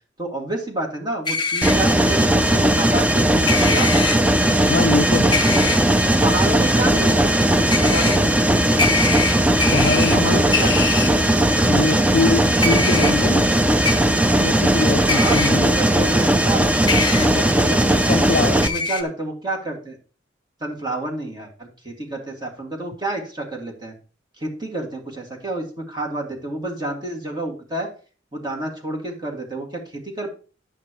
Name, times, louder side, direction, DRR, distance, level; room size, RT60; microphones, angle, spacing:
voice 1, 0.2-3.9 6.2-7.4 7.8-8.2 10.1-11.1 15.1-16.6 17.1-18.4 18.7-20.0 20.6-23.9 24.4-27.9 28.3-30.3, right 2 dB, 25° right, 2.2 m, -29 dB
sound 1, 1.2-1.7 3.5-4.2 5.3-5.8 7.7-8.2 8.8-10.2 10.5-11.1 12.6-13.1 13.8-13.9 15.1-15.5 16.9-17.3 18.6-19.0, left 4 dB, 25° left, 1.0 m, -23 dB
Mechanisms, 1.6-18.7, right 1 dB, 5° right, 0.5 m, -18 dB
voice 2, 4.7-5.7 9.7-10.5 11.6-13.5 14.4-15.7 17.2-17.5 18.1-18.6, left 3 dB, 50° left, 0.4 m, -23 dB
11.0 x 9.2 x 3.1 m
head